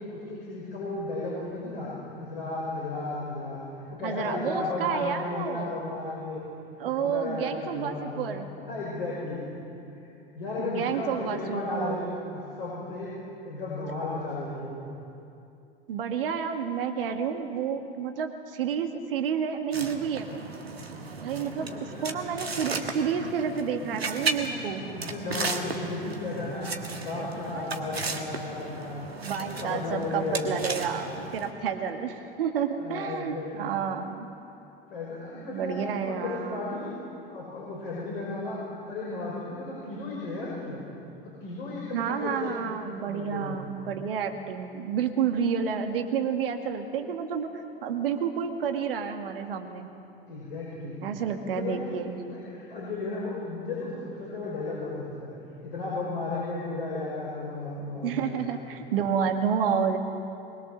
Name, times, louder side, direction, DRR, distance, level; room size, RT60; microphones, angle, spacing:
voice 1, 0.0-1.9 2.2-3.6 3.9-6.4 6.8-8.3 8.7-9.6 9.9-10.0 10.3-12.1 12.3-13.1 13.4-14.8 21.4-22.2 24.9-29.0 29.4-30.6 32.8-33.7 34.9-36.9 37.3-38.6 38.9-40.8 41.4-42.7 43.0-43.7 50.3-51.0 51.4-55.3 55.6-58.5, left 2 dB, 70° left, -5 dB, 5.8 m, -34 dB
voice 2, 4.0-5.8 6.8-8.5 10.6-12.2 15.9-20.4 21.2-24.8 29.2-34.3 35.5-36.6 41.9-49.9 51.0-52.2 58.0-60.0, right 7 dB, 70° right, 5 dB, 2.0 m, -30 dB
sound 1, 19.7-31.5, right 3 dB, 85° right, 1.6 m, -35 dB
23.0 x 21.5 x 6.7 m, 2.7 s
figure-of-eight pair, 75°, 30 cm